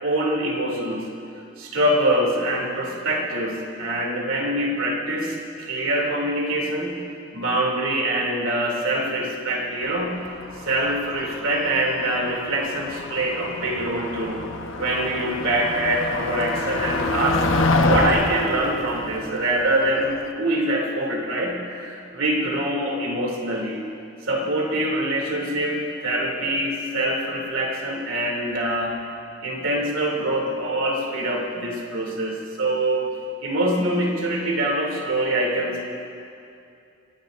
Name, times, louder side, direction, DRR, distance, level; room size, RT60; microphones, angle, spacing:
voice 1, 0.0-1.1 1.6-7.0 7.3-10.2 10.6-14.4 14.8-23.8 24.2-29.0 29.4-33.1 33.4-35.8, right 1 dB, 85° right, -1 dB, 2.8 m, -24 dB
Motor vehicle (road), 9.9-20.3, left 2 dB, 75° left, 1.0 m, -27 dB
24.0 x 17.5 x 2.6 m, 2.6 s
head